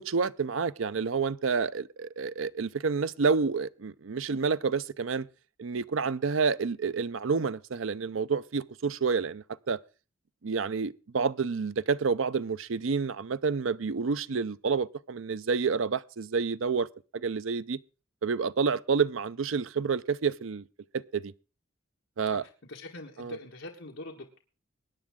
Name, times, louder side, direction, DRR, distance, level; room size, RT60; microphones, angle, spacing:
voice 1, 0.0-5.3 5.6-9.8 10.4-16.9 17.1-17.8 18.2-20.6 20.9-21.3 22.2-22.4 23.2-23.4, right 5 dB, 85° right, 0.6 m, -29 dB
voice 2, 22.3-24.4, left 2 dB, 70° left, 1.6 m, -43 dB
21.5 x 9.6 x 3.7 m
head